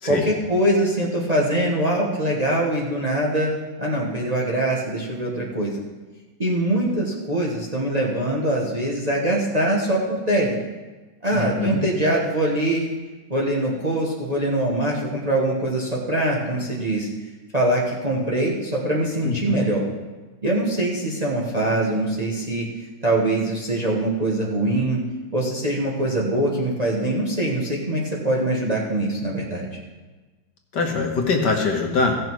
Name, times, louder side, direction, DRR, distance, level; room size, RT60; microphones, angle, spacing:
voice 1, 0.1-3.5 3.8-5.8 6.4-10.6 11.2-12.9 13.3-17.1 17.5-19.8 20.4-22.7 23.0-25.0 25.3-29.7, right 1 dB, 25° right, -3 dB, 1.2 m, -23 dB
voice 2, 11.3-11.8 19.2-19.6 30.7-32.2, left 4 dB, 65° left, 1 dB, 1.8 m, -23 dB
16.0 x 6.4 x 4.6 m, 1.3 s
omnidirectional pair, 2.1 m